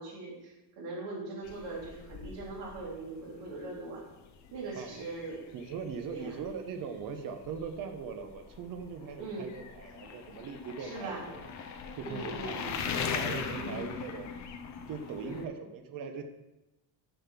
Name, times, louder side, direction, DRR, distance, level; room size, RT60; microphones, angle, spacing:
voice 1, 0.0-4.0 4.5-5.4 6.1-6.4 9.2-9.5 10.8-11.2 12.0-12.8 13.6-13.8 15.2-15.5, right 2 dB, 75° right, -4 dB, 3.3 m, -40 dB
sound 1, 1.4-15.4, left 6 dB, 40° left, 0.6 m, -41 dB
voice 2, 5.5-11.5 12.0-14.3 14.9-16.2, right 6 dB, 45° right, 6 dB, 1.0 m, -40 dB
7.0 x 5.7 x 5.9 m, 0.99 s
cardioid pair, 180°, 44 cm